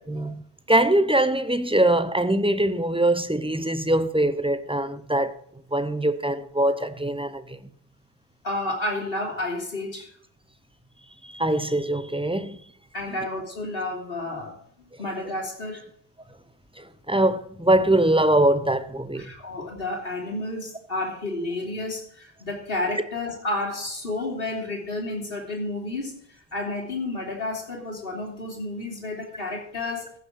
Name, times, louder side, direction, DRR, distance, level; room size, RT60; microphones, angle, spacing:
voice 1, 0.1-5.4 5.7-7.6 11.2-12.6 16.8-19.3, right 1 dB, 5° right, 0.6 m, -22 dB
voice 2, 8.4-10.1 12.9-15.8 19.2-26.2 26.5-30.1, left 2 dB, 60° left, 3.6 m, -31 dB
15.0 x 6.6 x 6.3 m
omnidirectional pair, 1.1 m